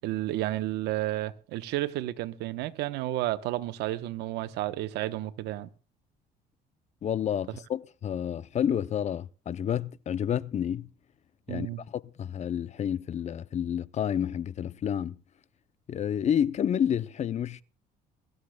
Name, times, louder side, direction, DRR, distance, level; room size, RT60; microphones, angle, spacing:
voice 1, 0.0-5.7 11.5-11.8, right 15 dB, 85° right, 1.0 m, -31 dB
voice 2, 7.0-10.9 11.5-15.2 15.9-17.6, left 9 dB, 40° left, 0.6 m, -29 dB
23.0 x 13.5 x 2.3 m
cardioid pair, 110°, 17 cm